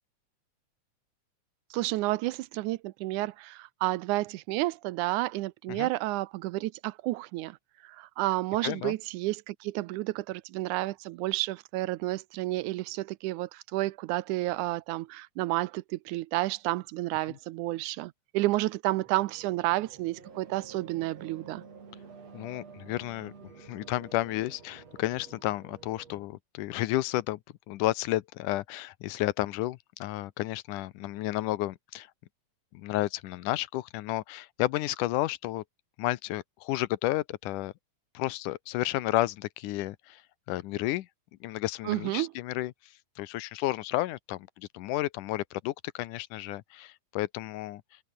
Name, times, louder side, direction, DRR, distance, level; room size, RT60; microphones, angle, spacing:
voice 1, 1.7-7.6 7.8-21.6 41.9-42.3, right 18 dB, 85° right, 2.1 m, -31 dB
voice 2, 8.6-8.9 22.3-23.3 23.6-27.4 27.7-32.1 32.7-35.6 36.0-37.7 38.1-40.2 40.5-41.1 41.4-42.7 43.2-47.8, left 16 dB, 90° left, 2.4 m, -32 dB
sound 1, 18.9-26.3, right 5 dB, 55° right, 4.8 m, -50 dB
omnidirectional pair, 3.5 m